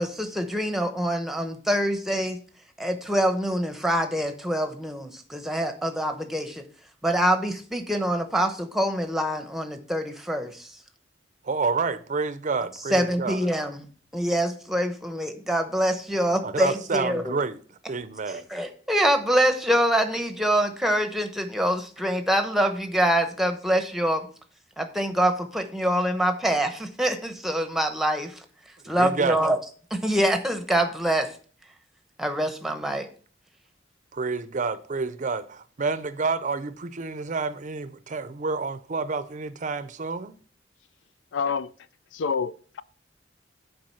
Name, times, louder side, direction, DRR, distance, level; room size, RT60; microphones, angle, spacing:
voice 1, 0.0-2.4 2.8-6.6 7.0-10.7 12.9-13.9 14.1-17.4 18.3-24.3 24.8-28.3 28.8-29.6 29.9-31.3 32.2-33.1, equal, ahead, 0.9 m, -25 dB
voice 2, 11.4-13.4 16.4-18.5 28.8-29.4 34.1-40.4, right 4 dB, 45° right, 0.5 m, -29 dB
voice 3, 41.3-41.7 42.1-42.8, left 6 dB, 80° left, 0.4 m, -27 dB
7.7 x 4.8 x 5.6 m
head